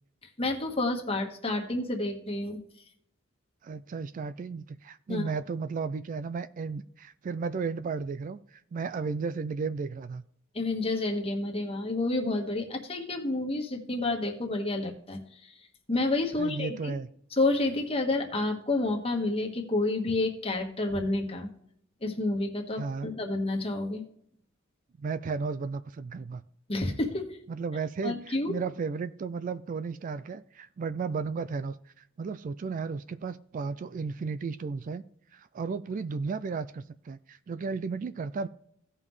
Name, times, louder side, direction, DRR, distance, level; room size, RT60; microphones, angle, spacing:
voice 1, 0.4-2.6 5.1-5.3 10.5-15.6 15.9-16.9 17.3-21.5 22.0-24.0 26.7-27.4 28.0-28.5, left 2 dB, 30° left, 2 dB, 1.4 m, -29 dB
voice 2, 3.6-10.2 16.4-17.1 22.7-23.1 25.0-26.4 27.5-35.0 35.3-38.5, right 5 dB, 40° right, 14 dB, 0.3 m, -34 dB
16.5 x 5.5 x 3.2 m, 0.69 s
head